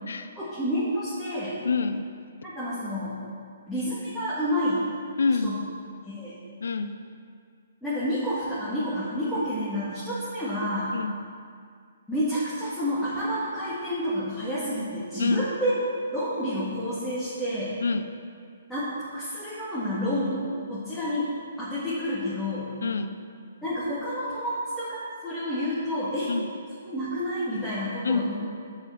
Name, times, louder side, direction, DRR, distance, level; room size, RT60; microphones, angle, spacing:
voice 1, 0.4-1.6 2.4-3.2 3.7-4.9 5.4-5.6 6.0-6.4 7.8-10.9 12.1-15.7 16.1-17.8 18.7-20.4 20.7-21.2 21.6-22.7 23.6-26.3 26.8-28.3, equal, 5° left, -12 dB, 1.7 m, -29 dB
voice 2, 1.6-2.1 5.2-5.5 6.6-6.9 10.9-11.2 15.2-15.4 17.8-18.1 22.8-23.2 26.3-26.5 28.0-28.2, left 4 dB, 75° left, 9 dB, 0.5 m, -26 dB
7.0 x 4.4 x 6.6 m, 2.2 s
hypercardioid pair, 135°, 0 cm